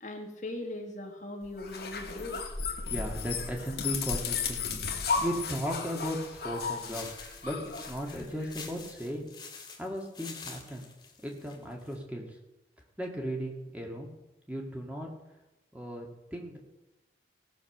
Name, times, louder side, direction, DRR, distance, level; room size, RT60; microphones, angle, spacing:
voice 1, 0.0-2.4, left 2 dB, 40° left, 3 dB, 1.8 m, -39 dB
sound 1, 1.6-8.5, left 5 dB, 60° left, 1.7 m, -34 dB
voice 2, 2.9-4.8 5.2-7.1 7.4-9.3 9.8-10.8 11.2-12.3 13.0-14.1 14.5-15.1 15.7-16.6, equal, 10° right, 0 dB, 2.0 m, -36 dB
sound 2, 6.8-12.0, left 5 dB, 25° left, 2.1 m, -47 dB
17.5 x 6.7 x 6.6 m, 1.0 s
head